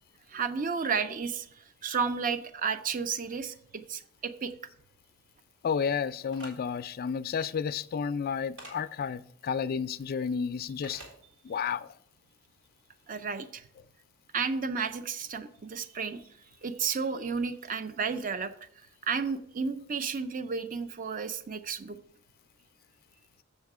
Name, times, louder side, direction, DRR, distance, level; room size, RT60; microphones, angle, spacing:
voice 1, 0.3-4.5 13.1-13.7 14.3-16.2 16.6-18.5 19.0-22.0, right 5 dB, 40° right, 0.5 m, -32 dB
voice 2, 5.6-11.0 11.4-11.9, left 6 dB, 45° left, 0.3 m, -31 dB
sound 1, 6.3-6.5 8.6-8.8 10.8-11.1, right 1 dB, 60° right, 3.1 m, -45 dB
7.4 x 6.3 x 4.8 m
head